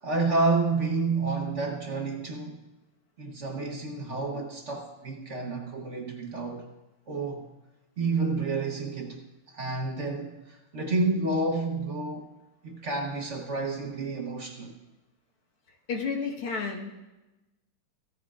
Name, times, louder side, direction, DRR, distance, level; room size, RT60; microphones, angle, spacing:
voice 1, 0.0-2.7 3.2-6.7 7.1-7.5 8.0-9.2 9.5-12.3 12.6-14.8, right 3 dB, 50° right, 0.9 m, -29 dB
voice 2, 15.9-16.9, left 5 dB, 85° left, 2.3 m, -31 dB
16.5 x 14.0 x 2.4 m
omnidirectional pair, 2.3 m